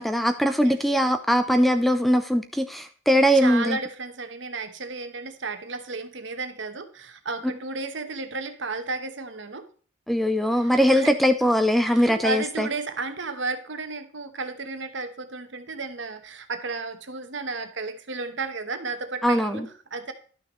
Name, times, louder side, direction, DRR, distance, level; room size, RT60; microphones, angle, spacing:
voice 1, 0.0-3.8 10.1-12.7 19.2-19.7, equal, ahead, 9 dB, 0.4 m, -21 dB
voice 2, 3.3-9.6 10.6-11.2 11.8-20.1, right 3 dB, 65° right, 8 dB, 1.1 m, -33 dB
12.0 x 6.1 x 3.1 m, 0.43 s
head